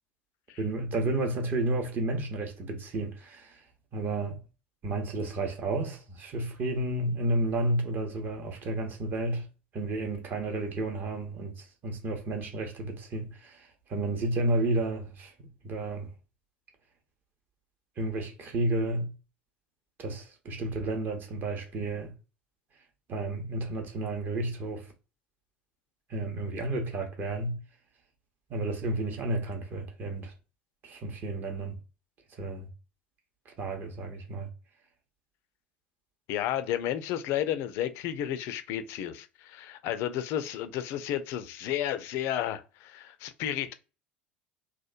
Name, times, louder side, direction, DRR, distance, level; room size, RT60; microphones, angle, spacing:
voice 1, 0.6-3.6 3.9-4.4 4.8-9.5 9.7-15.3 15.6-16.1 18.0-19.1 20.0-22.1 23.1-24.9 26.1-27.6 28.5-30.3 30.8-31.8 32.4-32.7 33.5-34.5, right 2 dB, 35° right, 0.7 m, -31 dB
voice 2, 36.3-43.7, left 11 dB, 50° left, 0.3 m, -32 dB
2.9 x 2.1 x 2.4 m
figure-of-eight pair, 70°, 6 cm